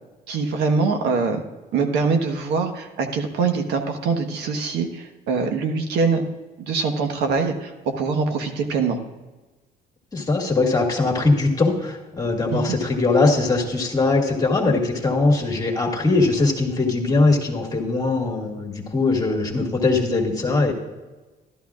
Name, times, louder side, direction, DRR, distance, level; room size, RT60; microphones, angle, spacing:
voice 1, 0.3-1.4 1.7-6.2 6.6-7.7 8.0-9.0 12.5-12.8, right 4 dB, 80° right, 5 dB, 1.2 m, -23 dB
voice 2, 10.1-20.7, left 3 dB, 20° left, 1 dB, 1.9 m, -21 dB
12.5 x 11.5 x 2.4 m, 1.2 s
cardioid pair, 110°, 17 cm